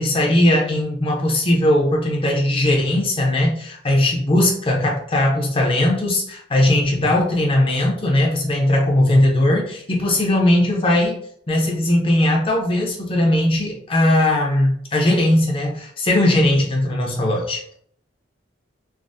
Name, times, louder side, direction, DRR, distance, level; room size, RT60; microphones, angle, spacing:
voice 1, 0.0-11.1 11.5-17.7, left 1 dB, 30° left, -1 dB, 0.5 m, -19 dB
3.3 x 2.0 x 2.6 m, 0.64 s
head